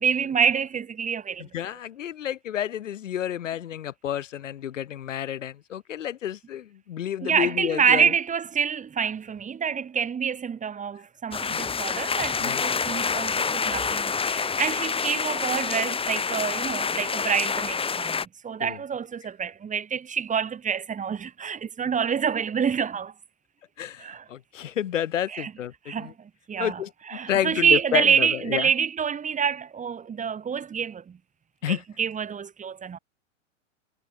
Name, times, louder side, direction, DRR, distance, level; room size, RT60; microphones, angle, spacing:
voice 1, 0.0-1.5 7.2-23.1 24.0-24.2 25.3-25.5 25.9-26.8 27.1-31.2 31.7-33.0, right 7 dB, 20° right, 5.2 m, -27 dB
voice 2, 1.4-8.1 11.5-11.7 12.4-12.6 18.6-18.8 23.8-26.1 26.6-28.7 31.6-31.8, left 10 dB, 75° left, 5.5 m, -30 dB
sound 1, 11.3-18.3, left 5 dB, 15° left, 2.4 m, -27 dB
hypercardioid pair, 110°, 37 cm